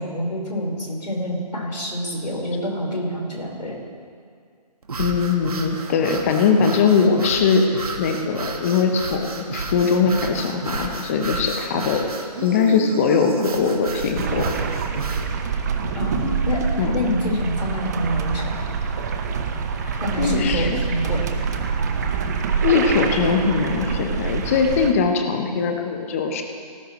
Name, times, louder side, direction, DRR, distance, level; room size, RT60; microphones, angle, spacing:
voice 1, 0.0-3.8 15.9-18.5 20.0-21.2, equal, 85° left, -2 dB, 4.4 m, -26 dB
sound 1, 4.8-15.3, right 3 dB, 60° right, 1.8 m, -32 dB
voice 2, 5.0-12.0 12.4-14.6 16.8-17.1 19.8-20.9 22.6-26.4, left 5 dB, 20° left, 5 dB, 0.8 m, -21 dB
sound 2, 14.2-24.9, right 6 dB, 25° right, 0.8 m, -25 dB
18.0 x 16.0 x 3.1 m, 2.2 s
figure-of-eight pair, 155°, 21 cm